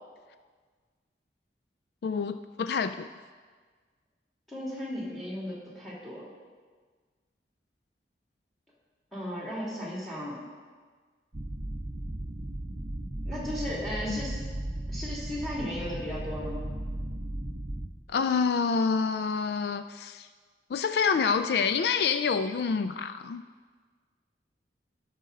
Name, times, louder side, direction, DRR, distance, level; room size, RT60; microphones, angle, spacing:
voice 1, 2.0-3.1 14.1-14.2 18.1-20.3 20.7-23.4, left 5 dB, 65° left, 11 dB, 0.3 m, -27 dB
voice 2, 4.5-6.2 9.1-10.4 13.2-14.4 14.9-16.6, equal, ahead, -6 dB, 2.7 m, -35 dB
sound 1, 11.3-17.9, right 1 dB, 35° right, 0.7 m, -36 dB
14.5 x 6.4 x 4.0 m, 1.5 s
head